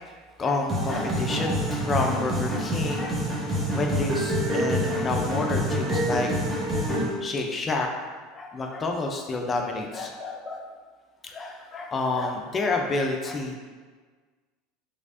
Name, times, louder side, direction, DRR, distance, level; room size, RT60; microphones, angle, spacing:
voice 1, 0.4-6.3 6.9-7.9 8.3-10.7 11.2-13.6, left 3 dB, 30° left, 2 dB, 0.4 m, -29 dB
sound 1, 0.7-7.1, equal, 15° right, 1.0 m, -27 dB
3.4 x 3.1 x 2.6 m, 1.5 s
hypercardioid pair, 90°, 0 cm